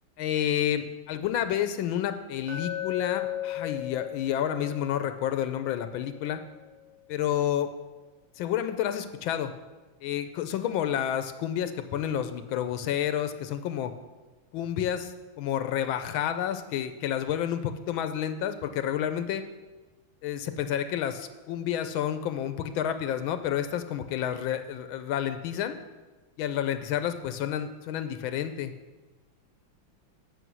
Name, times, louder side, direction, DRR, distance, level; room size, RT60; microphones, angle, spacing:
voice 1, 0.2-6.4 7.1-7.7 8.4-9.5 10.0-13.9 14.5-19.4 20.2-25.7 26.4-28.7, left 10 dB, 85° left, 9 dB, 1.4 m, -30 dB
Glass, 2.5-6.6, left 12 dB, 90° right, 2.4 m, -37 dB
9.2 x 6.3 x 6.0 m, 1.2 s
omnidirectional pair, 2.2 m